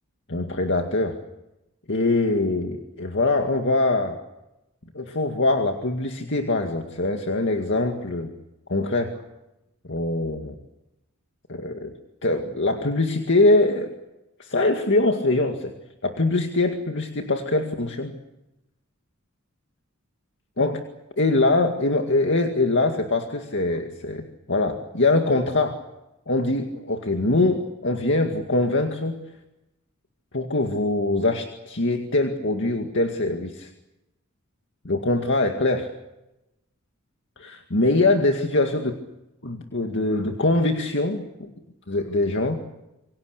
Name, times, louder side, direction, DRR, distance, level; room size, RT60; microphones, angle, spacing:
voice 1, 0.3-1.2 1.9-4.2 4.9-8.3 8.7-9.2 9.9-10.6 11.5-11.9 12.2-13.9 14.4-15.7 16.0-18.2 20.6-20.9 21.2-25.8 26.3-29.2 30.3-33.7 34.8-35.9 37.4-39.0 39.4-41.5 41.9-42.6, left 2 dB, 60° left, 4 dB, 2.2 m, -23 dB
28.0 x 24.5 x 6.7 m, 0.94 s
head